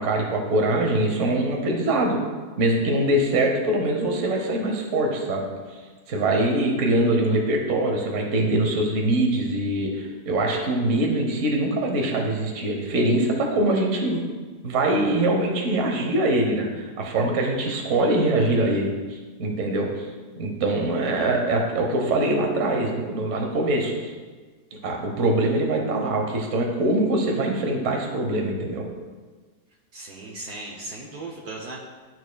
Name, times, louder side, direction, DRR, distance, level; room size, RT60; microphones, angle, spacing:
voice 1, 0.0-2.2 2.6-5.4 6.1-14.2 14.6-20.1 20.4-24.1 24.8-28.8, right 1 dB, 50° right, 1 dB, 1.1 m, -23 dB
voice 2, 29.9-31.9, right 2 dB, 65° right, -1 dB, 1.3 m, -37 dB
12.0 x 4.1 x 2.2 m, 1.4 s
omnidirectional pair, 1.9 m